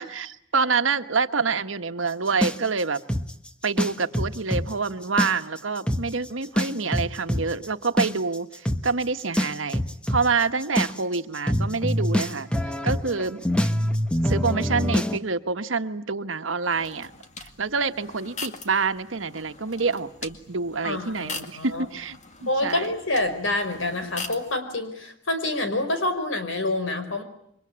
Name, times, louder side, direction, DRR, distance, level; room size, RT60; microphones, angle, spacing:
voice 1, 0.0-3.0 3.6-9.8 10.1-12.5 12.8-13.4 14.2-17.1 17.4-22.9, right 4 dB, 85° right, 9 dB, 1.4 m, -27 dB
sound 1, 2.4-4.7 5.0-5.6 5.9-6.0 6.6-15.2, equal, 5° left, 1.2 m, -24 dB
sound 2, 16.7-24.6, left 4 dB, 40° left, 2.1 m, -41 dB
voice 2, 20.8-21.8 22.5-27.2, left 2 dB, 85° left, 8 dB, 5.1 m, -27 dB
28.5 x 24.0 x 8.7 m, 0.71 s
head